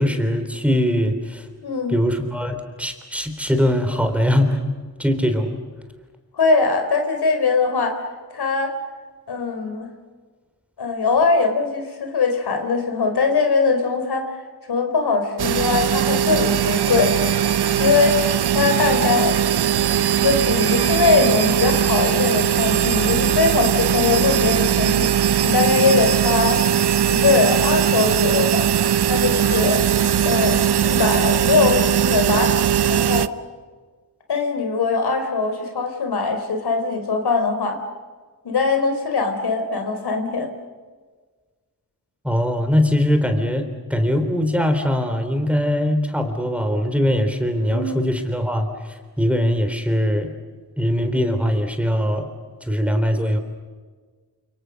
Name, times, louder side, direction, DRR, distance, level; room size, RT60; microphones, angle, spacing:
voice 1, 0.0-1.5 1.9-4.6 5.0-5.6 42.2-50.3 50.8-52.2 52.7-53.4, equal, 5° right, 6 dB, 3.6 m, -21 dB
voice 2, 1.6-2.0 6.4-8.0 8.3-8.8 9.3-9.9 10.8-14.3 14.7-17.2 17.8-18.2 18.5-19.4 20.2-26.6 27.1-28.7 29.1-29.8 30.2-30.6 30.8-32.6 32.9-33.3 34.3-37.8 38.4-40.5 47.7-48.0, left 4 dB, 80° left, 4 dB, 4.5 m, -21 dB
sound 1, 15.4-33.3, right 9 dB, 85° right, 0.9 m, -19 dB
29.0 x 28.0 x 6.5 m, 1.5 s
wide cardioid pair, 125°, 38 cm